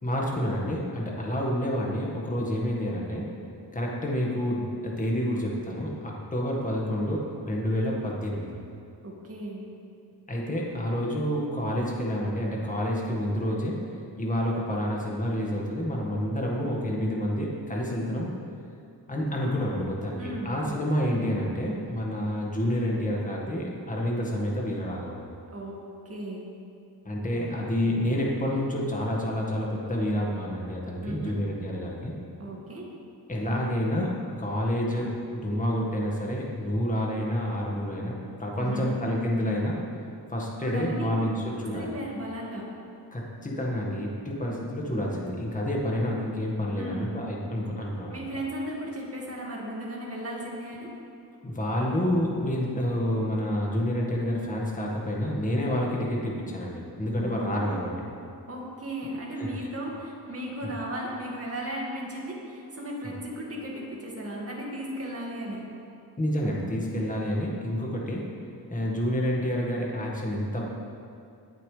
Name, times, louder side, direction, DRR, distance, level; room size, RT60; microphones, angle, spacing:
voice 1, 0.0-3.3 3.7-8.5 10.3-13.8 14.2-18.3 19.1-25.3 27.1-32.1 33.3-38.1 38.4-39.8 40.3-41.9 43.1-48.3 51.4-57.9 59.4-59.5 66.2-68.3 68.7-70.6, equal, 20° left, -3 dB, 1.8 m, -29 dB
voice 2, 9.0-9.6 20.2-20.8 25.5-25.8 26.1-26.4 31.0-31.4 32.4-32.9 38.6-39.0 40.6-41.3 41.7-42.7 46.8-47.2 48.1-50.9 57.2-57.9 58.5-65.6, right 1 dB, 35° right, -3 dB, 2.2 m, -36 dB
22.0 x 7.4 x 3.4 m, 2.6 s
wide cardioid pair, 140°, 40 cm